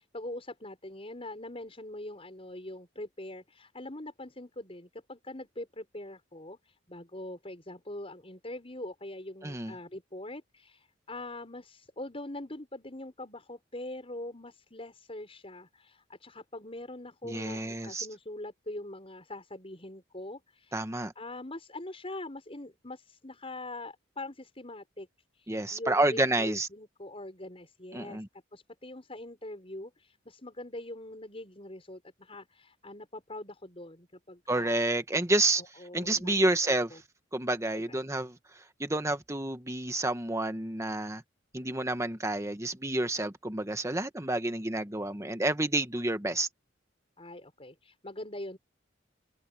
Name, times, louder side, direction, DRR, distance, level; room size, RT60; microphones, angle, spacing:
voice 1, 0.0-20.8 21.1-25.1 25.3-28.2 28.5-34.8 35.6-37.0 47.2-48.6, left 1 dB, 30° left, 6.3 m, -43 dB
voice 2, 9.4-9.7 17.2-18.1 20.7-21.1 25.5-26.7 27.9-28.3 34.5-35.6 35.9-37.0 37.3-38.4 38.8-41.2 41.5-46.5, right 2 dB, 15° right, 1.3 m, -29 dB
head